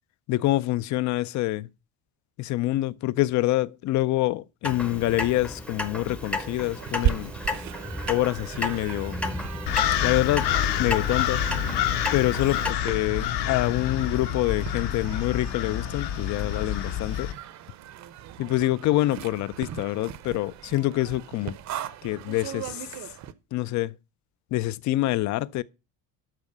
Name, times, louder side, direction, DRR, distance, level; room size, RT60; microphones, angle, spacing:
voice 1, 0.3-1.7 2.4-7.3 8.1-9.2 10.0-10.5 10.8-11.5 12.1-17.3 18.4-21.6 22.0-22.9 23.5-23.9 24.5-25.6, left 16 dB, 45° left, 0.4 m, -26 dB
Clock, 4.6-12.7, left 2 dB, 5° left, 0.7 m, -33 dB
sound 1, 6.2-23.3, right 11 dB, 40° right, 0.7 m, -37 dB
sound 2, 9.7-17.3, left 11 dB, 65° left, 1.4 m, -28 dB
12.5 x 4.8 x 6.6 m
cardioid pair, 170°, 42 cm